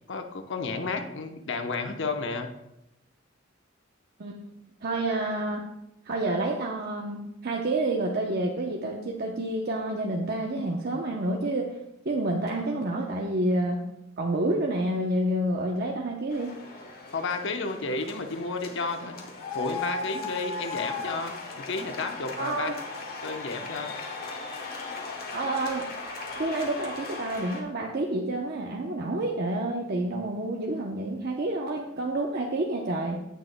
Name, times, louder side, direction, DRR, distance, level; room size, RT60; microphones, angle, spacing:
voice 1, 0.1-2.5 17.1-22.7 23.2-23.9, left 3 dB, 65° left, 5 dB, 0.9 m, -32 dB
voice 2, 4.8-5.6 6.0-11.8 12.0-13.9 14.2-16.6 22.4-22.7 25.3-25.8 26.4-33.2, right 1 dB, 50° right, 0 dB, 0.8 m, -29 dB
sound 1, 16.3-27.6, left 3 dB, 50° left, 1.6 m, -37 dB
16.0 x 6.6 x 2.2 m, 0.84 s
head